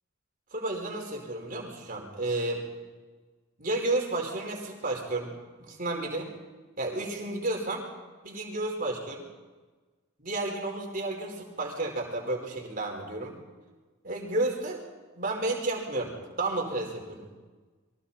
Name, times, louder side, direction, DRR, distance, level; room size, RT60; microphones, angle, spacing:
voice 1, 0.5-2.6 3.6-5.3 5.6-6.3 6.8-7.8 8.2-9.2 10.2-13.3 14.0-14.8 15.1-17.3, right 2 dB, 40° right, 0 dB, 4.8 m, -32 dB
29.0 x 23.5 x 4.3 m, 1.3 s
head